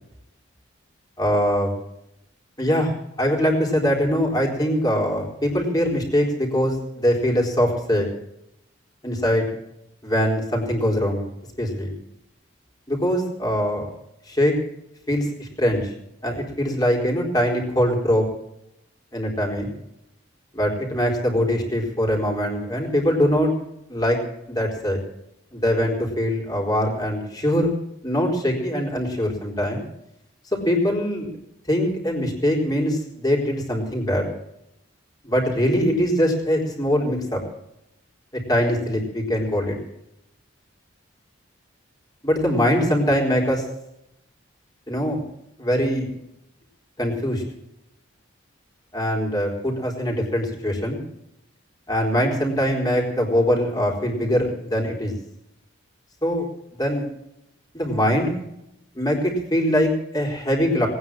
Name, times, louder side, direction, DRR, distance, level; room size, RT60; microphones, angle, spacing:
voice 1, 1.2-1.7 2.6-2.9 3.2-8.1 9.0-9.5 10.0-11.3 11.6-11.9 12.9-13.9 14.3-14.5 15.1-15.9 16.2-18.3 19.1-19.7 20.5-23.5 23.9-24.2 24.5-25.0 25.5-27.7 28.0-29.8 30.7-31.3 31.7-34.3 35.2-37.4 38.5-39.8 42.2-43.6 44.9-45.2 45.6-46.1 47.0-47.4 48.9-51.0 51.9-55.1 56.2-56.5 56.8-57.1 57.7-58.4 58.9-60.9, equal, 20° left, 0 dB, 4.0 m, -22 dB
19.5 x 9.6 x 7.5 m, 0.82 s
head